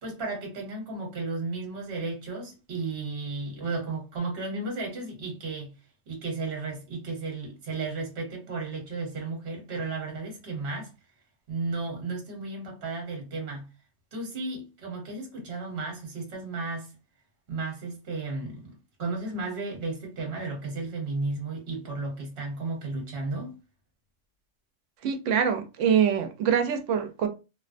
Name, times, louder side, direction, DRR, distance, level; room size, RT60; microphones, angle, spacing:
voice 1, 0.0-5.7 6.1-10.9 11.5-13.7 14.1-16.9 17.5-23.5, right 3 dB, 55° right, 1.2 m, -34 dB
voice 2, 25.0-27.3, right 8 dB, 75° right, 0.9 m, -24 dB
2.7 x 2.1 x 2.5 m
omnidirectional pair, 1.3 m